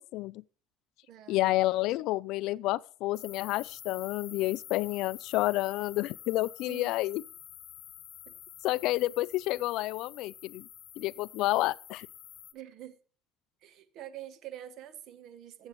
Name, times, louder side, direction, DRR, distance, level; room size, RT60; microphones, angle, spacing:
voice 1, 0.1-0.4 1.3-7.2 8.6-10.7 11.0-12.1, left 18 dB, 65° left, 0.4 m, -30 dB
voice 2, 1.1-1.5 6.7-6.9 8.3-8.4 12.5-13.0 13.6-15.7, right 12 dB, 50° right, 0.9 m, -46 dB
sound 1, 3.1-12.5, left 11 dB, 45° left, 1.0 m, -48 dB
15.0 x 7.9 x 3.1 m
cardioid pair, 145°, 0 cm